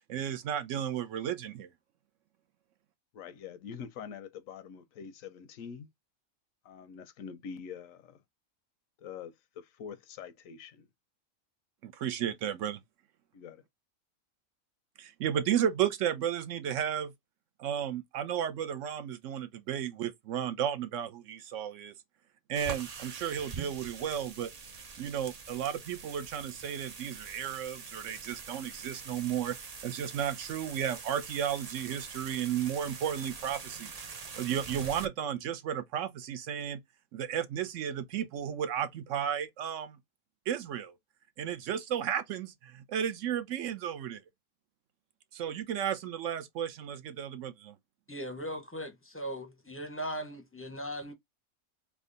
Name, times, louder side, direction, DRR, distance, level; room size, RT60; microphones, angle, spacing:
voice 1, 0.1-1.7 11.8-12.8 15.0-17.1 17.6-21.9 22.5-24.5 25.0-29.6 29.8-33.9 34.4-36.8 37.1-40.0 40.5-41.0 41.4-44.2 45.3-47.7, right 9 dB, 70° right, 0.9 m, -33 dB
voice 2, 3.1-5.9 6.6-8.2 9.0-10.9 13.3-13.6, left 7 dB, 80° left, 1.0 m, -45 dB
sound 1, 22.5-35.1, right 5 dB, 50° right, 0.5 m, -44 dB
voice 3, 48.1-51.1, equal, 15° left, 0.5 m, -38 dB
3.6 x 2.2 x 3.7 m
omnidirectional pair, 1.4 m